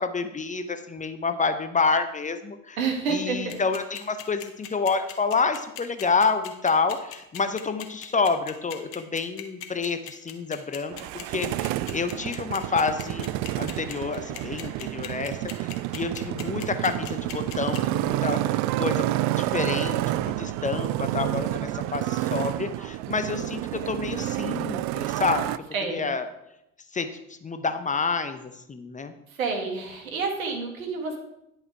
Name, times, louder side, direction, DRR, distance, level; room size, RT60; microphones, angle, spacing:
voice 1, 0.0-2.8 3.1-13.3 13.6-15.7 16.0-19.1 19.4-25.4 25.9-26.3 26.9-29.1, left 4 dB, 20° left, 9 dB, 0.7 m, -28 dB
voice 2, 2.8-3.6 25.7-26.1 29.4-31.2, right 4 dB, 80° right, 3 dB, 1.8 m, -28 dB
sound 1, 3.5-18.0, left 12 dB, 60° left, 1.4 m, -38 dB
Motorcycle, 10.9-25.6, right 15 dB, 45° right, 0.4 m, -29 dB
10.5 x 5.6 x 4.6 m, 0.85 s
figure-of-eight pair, 65°, 41 cm